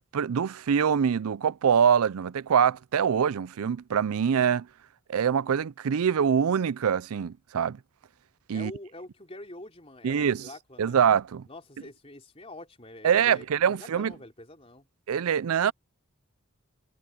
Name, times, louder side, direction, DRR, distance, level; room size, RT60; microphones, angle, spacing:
voice 1, 0.1-4.7 5.1-7.8 8.5-8.7 10.0-10.5 10.8-11.4 13.0-14.1 15.1-15.7, right 7 dB, 85° right, 0.4 m, -24 dB
voice 2, 8.5-11.0 11.5-14.9, left 1 dB, 25° left, 3.7 m, -45 dB
head